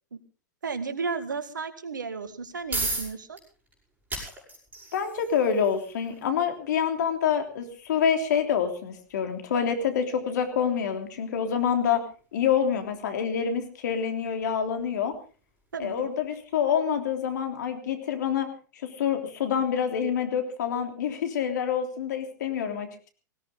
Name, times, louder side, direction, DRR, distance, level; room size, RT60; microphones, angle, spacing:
voice 1, 0.6-3.4 15.7-16.1, right 4 dB, 85° right, 11 dB, 1.9 m, -33 dB
sound 1, 2.2-17.1, right 2 dB, 15° right, 7.9 m, -41 dB
voice 2, 4.9-15.2 15.8-18.5 18.8-23.1, left 7 dB, 70° left, 6 dB, 3.4 m, -27 dB
18.5 x 17.5 x 3.9 m, 0.38 s
hypercardioid pair, 100°, 10 cm